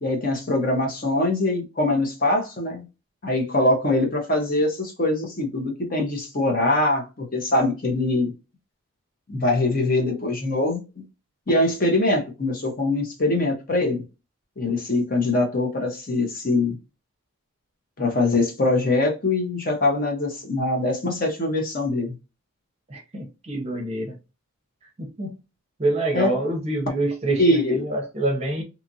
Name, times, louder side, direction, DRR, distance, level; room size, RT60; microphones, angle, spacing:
voice 1, 0.0-2.8 3.2-8.3 9.3-11.0 11.5-14.0 14.6-16.8 18.0-22.1 26.1-26.3 27.4-27.8, left 2 dB, 40° left, 0.7 m, -23 dB
voice 2, 22.9-24.1 25.0-25.3 25.8-28.6, right 1 dB, 30° right, 0.6 m, -26 dB
2.9 x 2.4 x 2.6 m
head